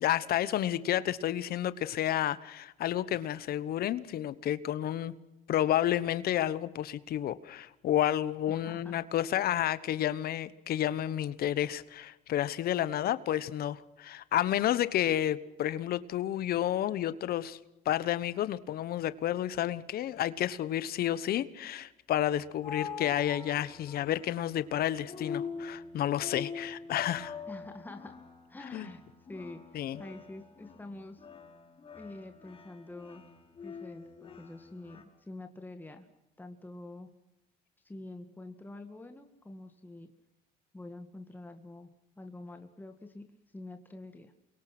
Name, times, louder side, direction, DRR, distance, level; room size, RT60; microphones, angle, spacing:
voice 1, 0.0-5.1 5.5-17.6 17.8-27.4 28.7-28.9 29.7-30.0, left 12 dB, 65° left, 1.2 m, -30 dB
voice 2, 8.5-8.9 27.5-28.2 28.5-29.0 29.3-29.6 30.0-31.2 31.9-33.2 33.6-36.1 36.4-37.1 37.8-40.1 40.7-41.9 42.2-43.2 43.5-44.3, left 2 dB, 10° left, 1.9 m, -46 dB
sound 1, 22.4-35.0, left 6 dB, 30° left, 5.3 m, -44 dB
29.0 x 23.0 x 6.1 m
cardioid pair, 110°, 17 cm